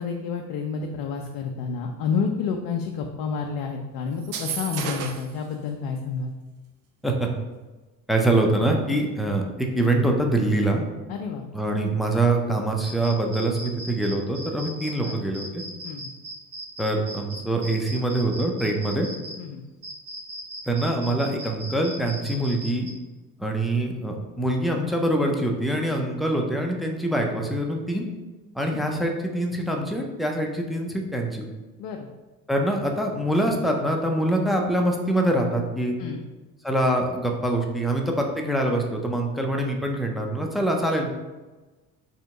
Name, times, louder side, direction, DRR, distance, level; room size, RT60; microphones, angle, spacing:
voice 1, 0.0-6.3 11.1-11.4 15.0-15.2 15.8-16.0 19.4-19.6 28.7-28.8 31.8-32.1 36.0-36.2, left 5 dB, 60° left, 2 dB, 0.6 m, -29 dB
sound 1, 4.2-5.4, right 7 dB, 55° right, 0.7 m, -32 dB
voice 2, 8.1-10.8 11.5-15.6 16.8-19.1 20.7-22.9 23.4-28.0 28.6-31.4 32.5-36.0 36.6-41.1, right 1 dB, ahead, 1 dB, 0.5 m, -24 dB
sound 2, 12.8-19.3 19.8-22.9, right 1 dB, 85° right, 1.5 m, -37 dB
3.4 x 2.8 x 3.8 m, 1.2 s
hypercardioid pair, 60°, 47 cm